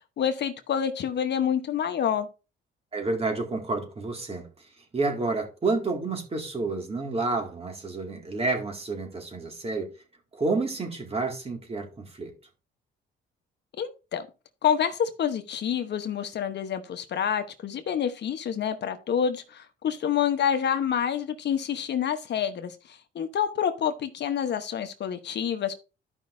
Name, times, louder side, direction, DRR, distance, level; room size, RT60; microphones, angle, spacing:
voice 1, 0.2-2.3 13.8-14.3 14.6-25.7, left 8 dB, 60° left, 1.0 m, -28 dB
voice 2, 2.9-4.5 4.9-9.9 10.3-12.3, right 3 dB, 30° right, 2.2 m, -29 dB
13.0 x 5.3 x 2.6 m
cardioid pair, 90°, 20 cm